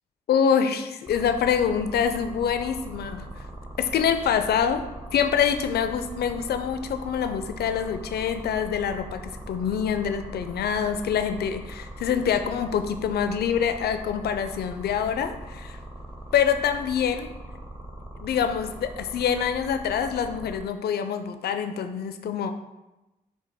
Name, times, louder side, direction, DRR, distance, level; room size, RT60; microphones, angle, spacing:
voice 1, 0.3-3.3 3.8-4.8 5.1-15.8 16.3-17.3 18.2-22.5, left 7 dB, 65° left, 9 dB, 0.4 m, -25 dB
sound 1, 1.1-20.6, right 1 dB, 30° right, 0.9 m, -40 dB
4.9 x 2.1 x 3.5 m, 1.0 s
supercardioid pair, 45°, 18 cm